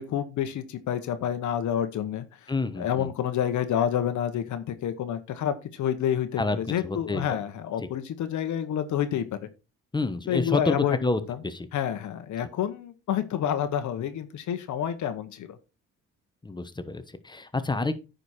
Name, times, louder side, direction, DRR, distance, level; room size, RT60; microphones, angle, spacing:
voice 1, 0.0-2.5 2.8-9.3 10.3-11.0 11.3-11.4 11.7-15.6, left 9 dB, 75° left, 10 dB, 1.1 m, -28 dB
voice 2, 2.5-3.1 6.4-6.6 6.8-7.2 7.8-7.9 9.9-11.7 16.4-18.0, left 3 dB, 15° left, 10 dB, 1.1 m, -28 dB
9.5 x 5.2 x 4.3 m, 0.29 s
cardioid pair, 90°, 30 cm